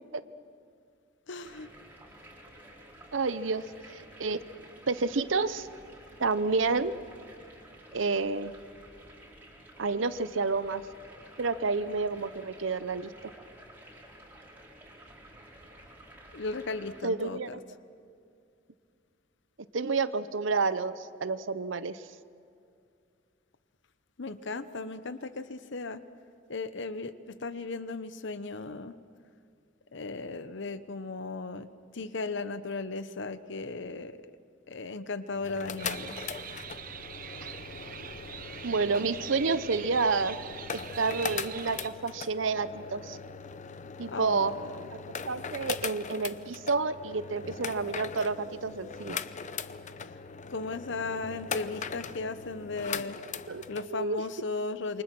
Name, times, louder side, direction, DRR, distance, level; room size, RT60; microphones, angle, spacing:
voice 1, 1.3-1.7 16.3-17.6 24.2-26.0 26.5-28.9 29.9-34.2 34.7-36.2 44.1-44.8 50.5-53.2 53.7-55.0, left 3 dB, 70° left, 12 dB, 0.9 m, -36 dB
sound 1, 1.4-17.0, right 1 dB, 10° right, 4.5 m, -52 dB
voice 2, 3.1-4.4 4.9-5.7 6.2-6.9 7.9-8.5 9.8-10.8 11.4-13.1 17.0-17.5 19.7-22.0 37.4-37.5 37.8-38.0 38.6-40.4 40.7-43.2 44.0-44.5 45.3-49.2 53.5-53.6 53.9-54.2, right 4 dB, 75° right, 13 dB, 0.8 m, -29 dB
sound 2, 35.3-53.9, left 6 dB, 40° left, 0.7 m, -40 dB
sound 3, 35.8-41.9, right 7 dB, 50° right, 0.9 m, -43 dB
28.0 x 24.5 x 6.1 m, 2.4 s
head